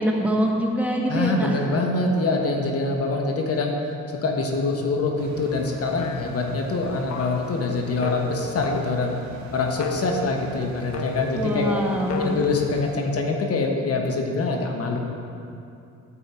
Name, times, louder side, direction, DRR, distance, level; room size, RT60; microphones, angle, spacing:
voice 1, 0.0-1.8 11.3-12.3, right 1 dB, 5° right, 0 dB, 1.2 m, -24 dB
voice 2, 1.1-3.8 4.2-9.1 9.5-11.8 12.2-15.0, left 3 dB, 50° left, 2 dB, 1.1 m, -24 dB
sound 1, 5.2-13.0, right 5 dB, 65° right, 0.7 m, -44 dB
sound 2, 6.0-6.4 7.1-7.5 8.0-9.2 9.7-10.3 10.9-11.4 12.1-12.3, left 3 dB, 70° left, 0.8 m, -32 dB
9.6 x 7.6 x 4.3 m, 2.6 s
cardioid pair, 90°, 30 cm